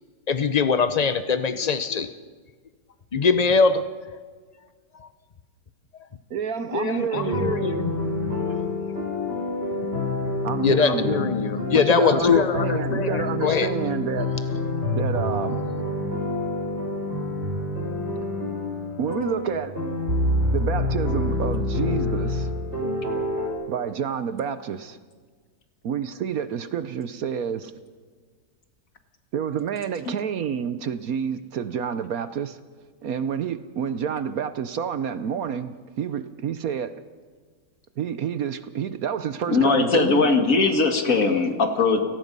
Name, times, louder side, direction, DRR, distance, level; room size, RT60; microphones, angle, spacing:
voice 1, 0.3-2.1 3.1-3.8 6.7-7.9 10.6-13.7, left 5 dB, 90° left, 10 dB, 0.3 m, -22 dB
voice 2, 6.3-7.5 10.4-11.3 11.7-14.3 14.9-15.6 19.0-19.7 20.5-22.5 23.7-25.0 25.8-27.7 29.3-32.6 33.0-36.9 38.0-40.3, right 7 dB, 60° right, 12 dB, 1.1 m, -29 dB
sound 1, 7.1-23.5, left 2 dB, 35° right, 5.5 m, -27 dB
voice 3, 39.5-42.0, left 4 dB, 50° left, 5 dB, 2.2 m, -20 dB
29.5 x 18.0 x 5.4 m, 1.5 s
omnidirectional pair, 1.9 m